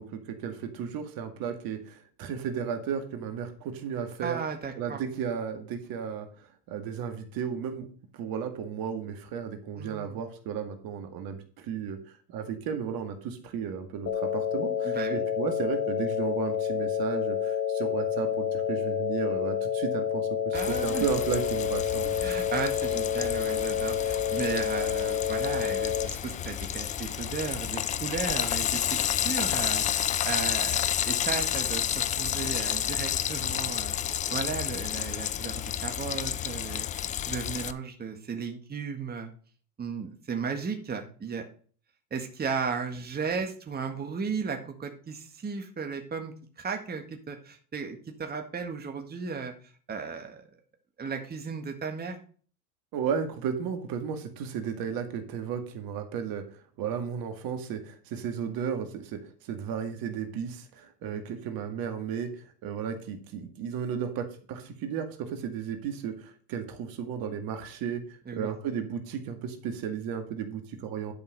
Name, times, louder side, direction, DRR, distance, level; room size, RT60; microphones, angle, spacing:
voice 1, 0.0-4.4 4.8-7.9 8.1-22.2 52.9-71.1, right 7 dB, 50° right, 6 dB, 2.0 m, -34 dB
voice 2, 4.2-5.0 9.8-10.2 14.8-15.2 20.5-21.1 22.2-34.0 34.3-39.3 39.8-41.4 42.1-50.4 51.0-52.2 68.3-68.5, right 5 dB, 20° right, 4 dB, 1.8 m, -35 dB
sound 1, 14.1-26.1, left 9 dB, 35° left, 1.6 m, -29 dB
Frying (food), 20.5-37.7, left 10 dB, 20° left, 0.3 m, -31 dB
11.0 x 5.6 x 5.3 m, 0.43 s
hypercardioid pair, 90°, 46 cm